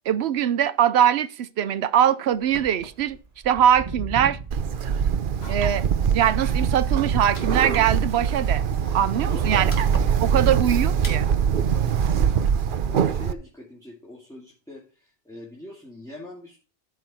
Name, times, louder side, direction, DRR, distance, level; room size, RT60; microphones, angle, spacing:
voice 1, 0.1-3.2 3.4-4.4 5.5-5.8 6.1-8.7 8.9-9.7 10.2-11.3, right 9 dB, 85° right, 0.9 m, -22 dB
Wind / Car, 2.4-8.3 8.6-11.0, right 4 dB, 40° right, 1.3 m, -37 dB
Bird, 4.5-13.3, right 7 dB, 60° right, 0.8 m, -23 dB
sound 1, 5.4-11.5, equal, 80° left, 2.6 m, -45 dB
voice 2, 9.3-9.7 10.7-10.8 11.7-16.6, left 2 dB, 5° left, 2.6 m, -43 dB
13.0 x 6.2 x 4.3 m
omnidirectional pair, 1.1 m